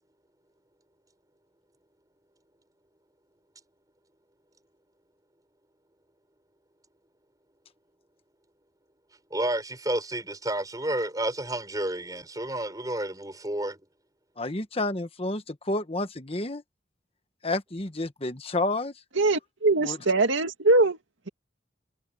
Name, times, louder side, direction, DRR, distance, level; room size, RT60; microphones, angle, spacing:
voice 1, 9.3-13.8, right 1 dB, 20° right, 7.1 m, -30 dB
voice 2, 14.4-16.6 17.4-18.9 19.8-20.0, left 2 dB, 30° left, 1.3 m, -30 dB
voice 3, 19.2-21.0, right 2 dB, 85° right, 2.2 m, -22 dB
head